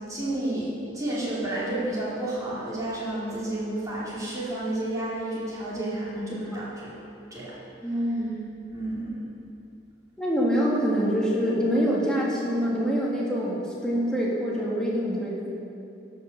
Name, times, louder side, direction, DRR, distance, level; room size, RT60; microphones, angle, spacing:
voice 1, 0.1-0.7 0.9-6.7 7.3-7.6 8.7-9.2, right 1 dB, 20° right, -8 dB, 2.9 m, -31 dB
voice 2, 7.8-8.5 10.2-15.5, equal, 5° left, -6 dB, 1.9 m, -25 dB
12.5 x 5.6 x 6.5 m, 2.7 s
head